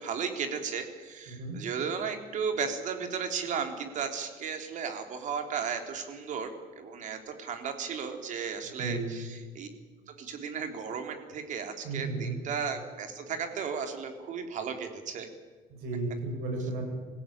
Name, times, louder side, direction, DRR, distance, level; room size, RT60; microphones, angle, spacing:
voice 1, 0.0-9.7 10.1-15.3, right 6 dB, 50° right, 6 dB, 3.6 m, -35 dB
voice 2, 1.3-1.6 8.8-9.1 11.8-12.4 15.7-16.8, right 3 dB, 80° right, 2 dB, 7.6 m, -33 dB
25.0 x 16.5 x 8.9 m, 1.4 s
cardioid pair, 135°, 16 cm